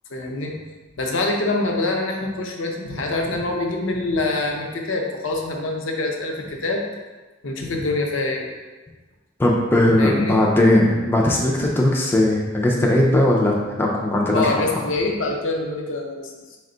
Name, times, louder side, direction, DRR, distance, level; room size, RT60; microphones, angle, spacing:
voice 1, 0.1-0.6 1.0-6.8 7.4-8.5 10.0-10.4 14.3-16.6, left 2 dB, 70° left, 1 dB, 0.6 m, -25 dB
voice 2, 9.4-14.5, left 1 dB, 10° left, -2 dB, 0.3 m, -18 dB
4.1 x 2.2 x 3.8 m, 1.3 s
head